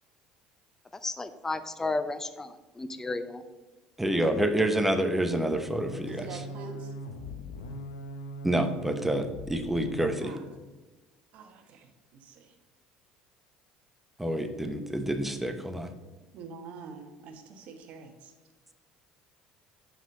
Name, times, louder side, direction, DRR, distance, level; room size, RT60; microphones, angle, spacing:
voice 1, 1.0-3.4, left 3 dB, 15° left, 11 dB, 0.6 m, -33 dB
voice 2, 4.0-6.4 8.4-10.3 14.2-15.9, right 1 dB, 10° right, 7 dB, 0.9 m, -28 dB
sound 1, 5.5-10.4, equal, 90° left, 0.7 m, -41 dB
voice 3, 6.1-6.9 10.2-10.4 11.3-12.5 16.3-18.3, right 4 dB, 60° right, 5 dB, 1.2 m, -45 dB
5.8 x 4.9 x 6.6 m, 1.2 s
hypercardioid pair, 75°, 3 cm